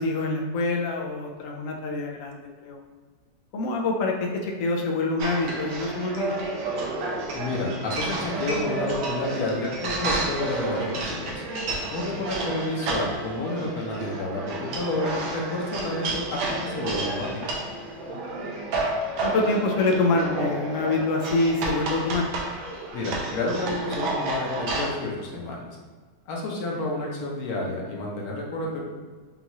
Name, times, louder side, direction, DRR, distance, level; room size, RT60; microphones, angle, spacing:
voice 1, 0.0-2.8 3.5-6.4 18.1-18.2 19.2-22.3, left 3 dB, 80° left, 1 dB, 0.7 m, -26 dB
sound 1, 5.2-24.9, right 2 dB, 70° right, 1.2 m, -31 dB
voice 2, 7.3-11.4 11.9-17.3 22.9-25.8 26.3-28.8, left 2 dB, 65° left, -1 dB, 1.2 m, -30 dB
5.4 x 2.3 x 2.9 m, 1.4 s
omnidirectional pair, 1.9 m